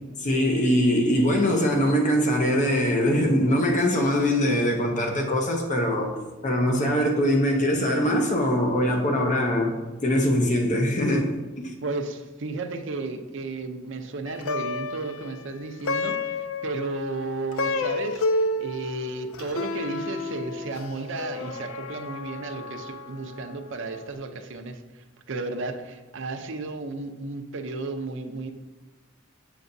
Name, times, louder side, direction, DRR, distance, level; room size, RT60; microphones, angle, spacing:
voice 1, 0.2-6.1 6.4-9.8 10.0-11.7, equal, 35° left, 1 dB, 0.7 m, -22 dB
voice 2, 11.8-28.5, right 3 dB, 60° right, 6 dB, 0.6 m, -33 dB
Plucked string instrument, 14.3-23.7, left 2 dB, 70° left, 0.4 m, -31 dB
7.0 x 6.9 x 2.6 m, 1.2 s
head